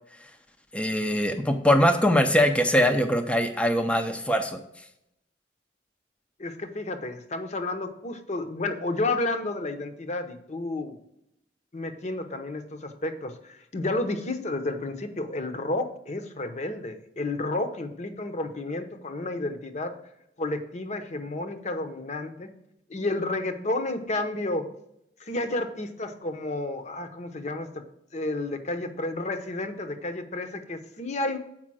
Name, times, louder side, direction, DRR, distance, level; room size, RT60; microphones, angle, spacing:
voice 1, 0.7-4.6, equal, 5° left, 5 dB, 0.5 m, -22 dB
voice 2, 6.4-11.0 11.7-19.9 20.4-22.5 22.9-24.7 25.2-27.8 28.1-31.4, left 2 dB, 40° left, 8 dB, 0.8 m, -31 dB
7.5 x 5.0 x 6.2 m, 0.78 s
head